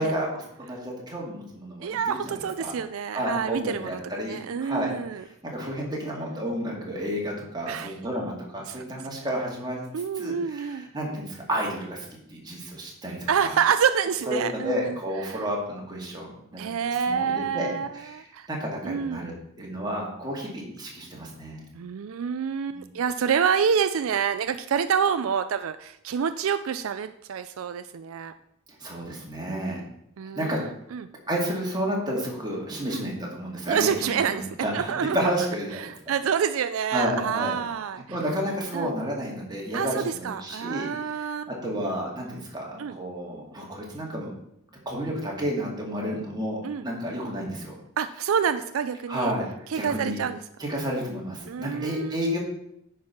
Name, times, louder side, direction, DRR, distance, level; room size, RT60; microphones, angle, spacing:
voice 1, 0.0-2.7 3.1-4.9 5.4-9.8 10.2-13.5 14.3-16.6 17.1-21.6 22.7-22.9 28.8-29.8 30.4-30.6 31.3-35.9 36.9-37.6 38.1-44.3 44.9-47.7 49.1-49.5 49.7-50.2 50.6-52.4, equal, 20° right, -2 dB, 2.2 m, -31 dB
voice 2, 1.8-4.0 4.3-5.2 7.7-7.9 8.7-8.8 9.9-10.9 13.3-15.0 15.2-15.4 16.6-18.5 18.8-19.3 21.7-28.3 30.2-30.7 30.9-31.1 32.9-33.1 33.7-34.5 34.7-35.2 35.8-38.0 38.7-38.9 39.7-41.5 42.8-42.9 46.6-46.8 48.0-49.3 49.7-50.4 51.5-52.2, right 7 dB, 75° right, 11 dB, 0.4 m, -27 dB
9.2 x 4.7 x 5.8 m, 0.76 s
head